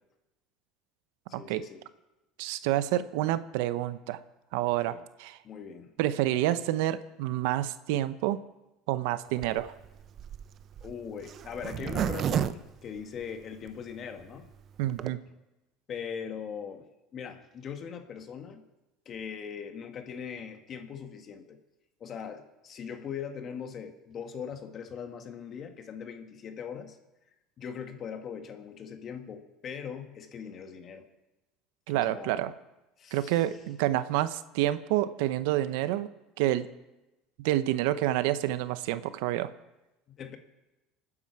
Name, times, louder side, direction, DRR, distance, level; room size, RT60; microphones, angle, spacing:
voice 1, 1.3-1.8 4.7-5.0 5.4-5.9 10.8-12.5 12.8-14.5 15.9-16.9 17.1-18.6 19.1-21.6 22.0-27.0 27.6-31.0 31.9-32.5 33.0-33.5 40.1-40.4, left 7 dB, 40° left, 6 dB, 1.9 m, -40 dB
voice 2, 2.4-4.2 4.5-5.4 6.0-8.4 8.9-9.7 14.8-15.2 31.9-32.5 33.1-36.1 36.4-36.7 37.4-39.5, right 14 dB, 80° right, 14 dB, 0.7 m, -28 dB
Zipper (clothing), 9.4-13.7 14.2-14.3 14.4-14.5 14.8-15.1, right 9 dB, 45° right, 0.7 m, -32 dB
27.0 x 9.7 x 4.7 m, 0.98 s
supercardioid pair, 110°, 0 cm